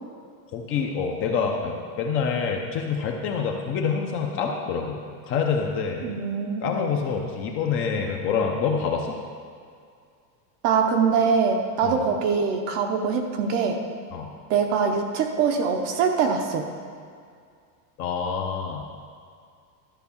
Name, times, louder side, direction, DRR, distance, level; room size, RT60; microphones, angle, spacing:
voice 1, 0.5-5.0 5.3-6.0 6.6-9.2 11.8-12.0 14.1-14.3 18.0-18.8, left 6 dB, 25° left, 1 dB, 0.6 m, -26 dB
voice 2, 6.0-6.7 10.6-13.8 14.5-16.7, right 6 dB, 35° right, 4 dB, 0.7 m, -23 dB
12.0 x 4.5 x 7.1 m, 2.3 s
supercardioid pair, 160°, 49 cm